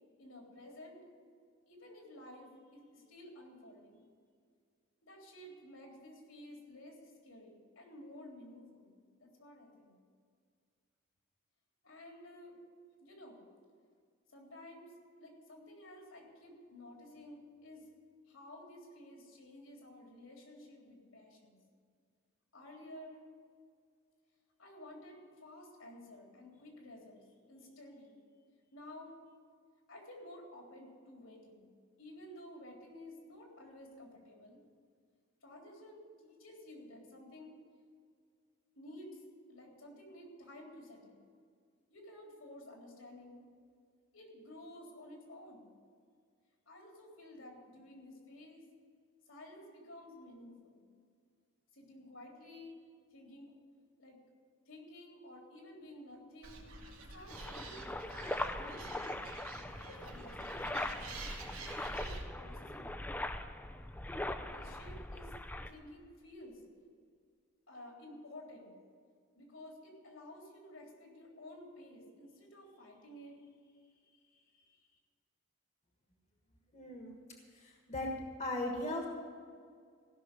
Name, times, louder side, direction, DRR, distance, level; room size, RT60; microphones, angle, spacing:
voice 1, 0.2-1.0 1.7-4.0 5.0-8.9 9.2-10.0 11.8-12.6 13.0-13.4 14.3-14.9 15.2-17.9 18.3-21.6 22.5-23.3 24.6-28.2 28.7-29.2 29.9-31.7 32.0-34.6 35.4-37.6 38.7-39.2 39.5-41.2 41.9-43.4 44.1-45.7 46.7-48.6 49.3-50.8 51.7-52.8 53.1-53.5 54.0-54.2 54.7-56.7 57.1-57.8 58.6-59.2 59.8-61.0 61.5-63.1 64.5-65.3 65.7-66.6 67.7-68.8 69.3-74.9, left 1 dB, 80° left, 0 dB, 3.6 m, -53 dB
Animal, 56.4-62.2, right 2 dB, 85° right, 2.3 m, -47 dB
sound 1, 57.3-65.7, left 1 dB, 10° left, 0.5 m, -41 dB
voice 2, 76.7-77.2 77.5-78.1 78.4-79.1, left 1 dB, 35° left, 0 dB, 1.5 m, -38 dB
15.5 x 6.5 x 9.9 m, 2.1 s
head